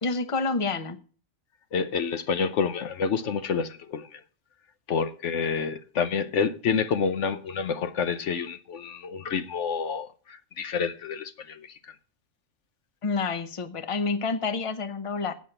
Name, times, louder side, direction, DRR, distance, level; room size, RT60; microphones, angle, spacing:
voice 1, 0.0-1.0 13.0-15.3, left 4 dB, 30° left, 0.9 m, -28 dB
voice 2, 1.7-4.2 4.9-11.8, left 6 dB, 70° left, 1.0 m, -28 dB
8.4 x 7.4 x 8.7 m
omnidirectional pair, 1.3 m